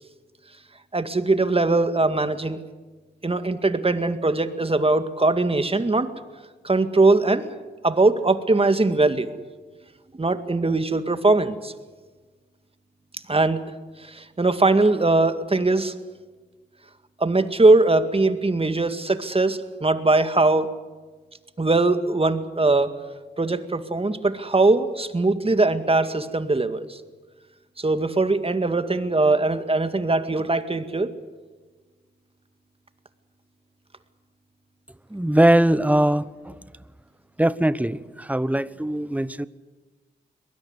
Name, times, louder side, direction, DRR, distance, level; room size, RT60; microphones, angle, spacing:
voice 1, 0.9-2.6 3.2-6.1 6.6-7.5 7.8-9.3 10.1-11.7 13.3-13.6 14.0-15.9 17.2-20.7 21.6-22.9 23.4-27.0 27.8-31.1, right 2 dB, 30° right, 10 dB, 2.1 m, -21 dB
voice 2, 35.1-36.6 37.4-39.5, right 1 dB, 10° right, 16 dB, 1.1 m, -21 dB
23.0 x 20.5 x 8.2 m, 1.3 s
supercardioid pair, 45°, 19 cm